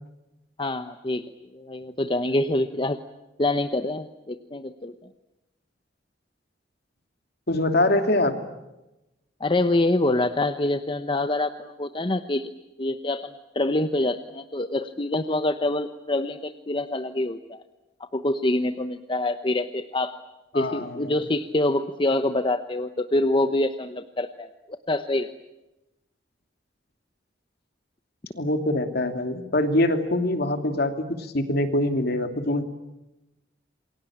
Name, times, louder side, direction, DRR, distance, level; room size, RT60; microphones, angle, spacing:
voice 1, 0.6-1.2 1.5-3.0 3.4-4.9 9.4-12.5 12.8-17.6 18.1-20.1 20.5-25.3, left 2 dB, 25° left, 9 dB, 1.0 m, -26 dB
voice 2, 7.5-8.3 20.5-21.1 28.3-32.6, left 1 dB, 55° left, 7 dB, 2.9 m, -24 dB
28.0 x 22.5 x 8.8 m, 0.98 s
head